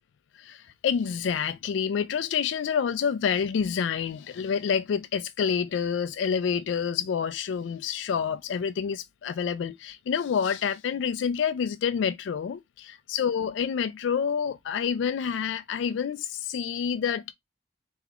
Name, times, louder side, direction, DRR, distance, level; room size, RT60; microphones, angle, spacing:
voice 1, 0.4-17.3, left 7 dB, 80° left, 0.3 m, -28 dB
3.4 x 3.4 x 3.5 m
head